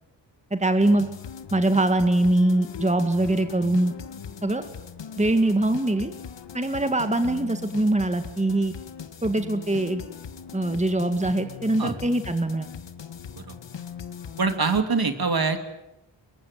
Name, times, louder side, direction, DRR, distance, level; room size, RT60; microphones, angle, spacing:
voice 1, 0.5-1.1 1.5-3.9 4.4-4.6 5.2-6.1 6.5-8.7 9.2-10.0 10.5-12.7, right 1 dB, 15° right, 8 dB, 2.0 m, -23 dB
sound 1, 0.8-14.8, left 7 dB, 70° left, 1.6 m, -40 dB
voice 2, 14.4-15.6, right 4 dB, 55° right, 7 dB, 3.1 m, -23 dB
23.5 x 23.0 x 9.4 m, 0.91 s
wide cardioid pair, 70°, 44 cm